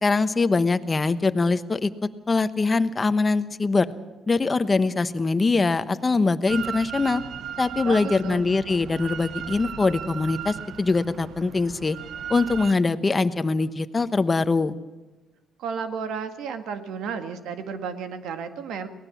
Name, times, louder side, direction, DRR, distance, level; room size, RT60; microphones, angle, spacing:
voice 1, 0.0-1.9 2.3-3.9 4.3-7.2 7.6-12.0 12.3-14.8, left 3 dB, 25° left, 12 dB, 1.1 m, -23 dB
Drill, 6.5-12.7, right 9 dB, 65° right, 0.7 m, -36 dB
voice 2, 7.8-8.4 15.6-18.9, right 6 dB, 80° right, 9 dB, 1.8 m, -32 dB
23.0 x 18.5 x 7.2 m, 1.1 s
cardioid pair, 110°, 0 cm